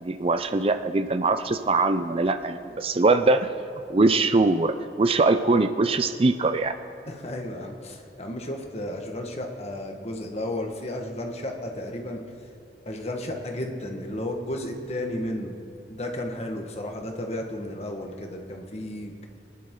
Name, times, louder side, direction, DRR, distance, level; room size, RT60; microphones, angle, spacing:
voice 1, 0.0-3.5 3.9-6.7, right 3 dB, 30° right, 9 dB, 0.5 m, -22 dB
voice 2, 7.1-12.2 12.8-15.6 15.9-19.3, left 1 dB, 35° left, 2 dB, 1.5 m, -33 dB
23.5 x 11.0 x 3.8 m, 2.4 s
head